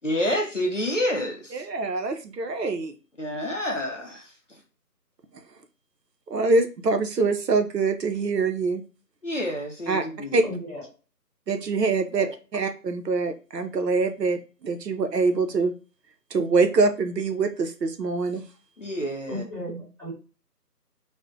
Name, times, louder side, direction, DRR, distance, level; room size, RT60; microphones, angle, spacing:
voice 1, 0.0-1.6 3.2-4.2 9.2-10.4 18.8-19.4, left 1 dB, 50° left, 1 dB, 0.5 m, -28 dB
voice 2, 1.5-2.9 5.3-5.4 6.3-8.8 9.9-10.0 10.3-10.4 11.5-15.7 16.3-18.4, right 3 dB, 85° right, 6 dB, 0.6 m, -24 dB
voice 3, 10.4-10.8 12.2-12.3 19.3-20.1, equal, 5° right, -15 dB, 1.4 m, -35 dB
2.5 x 2.1 x 3.4 m, 0.35 s
figure-of-eight pair, 160°, 48 cm